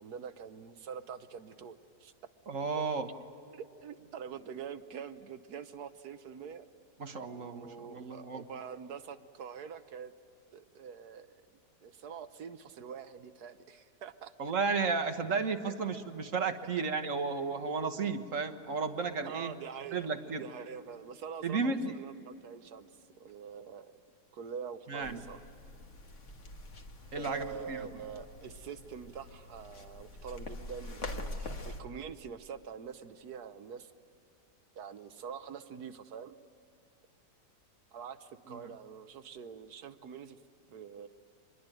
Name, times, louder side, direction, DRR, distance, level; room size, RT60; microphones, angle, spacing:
voice 1, 0.0-2.1 3.5-6.7 7.3-10.1 10.5-11.4 11.8-14.3 19.3-20.1 20.4-22.9 23.2-24.0 24.3-25.4 27.1-33.9 34.8-36.3 37.9-40.4 40.7-41.1, right 7 dB, 70° right, 11 dB, 1.4 m, -45 dB
voice 2, 2.5-3.1 7.0-8.5 14.4-19.5 19.9-20.5 21.4-21.9 24.9-25.2 27.1-27.9 38.5-38.7, right 4 dB, 50° right, 7 dB, 1.6 m, -33 dB
sound 1, 25.0-31.8, left 2 dB, 45° left, 1.8 m, -45 dB
25.5 x 21.5 x 9.1 m, 2.6 s
omnidirectional pair, 1.8 m